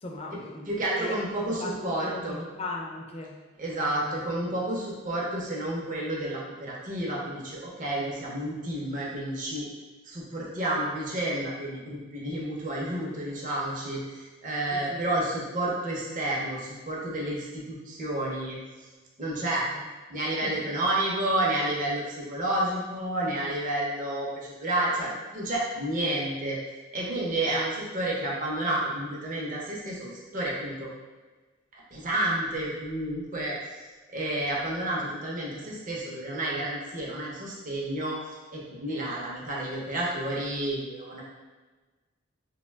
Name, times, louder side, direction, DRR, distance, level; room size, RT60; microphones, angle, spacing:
voice 1, 0.0-3.4 3.8-4.2 14.7-15.1 19.7-19.8 20.4-20.9, left 2 dB, 30° left, 0 dB, 0.4 m, -39 dB
voice 2, 0.7-2.4 3.6-9.7 10.0-18.6 19.2-19.6 20.1-26.6 26.9-30.9 31.7-33.6 34.1-41.2, right 1 dB, 45° right, -4 dB, 0.6 m, -30 dB
2.7 x 2.1 x 3.2 m, 1.3 s
head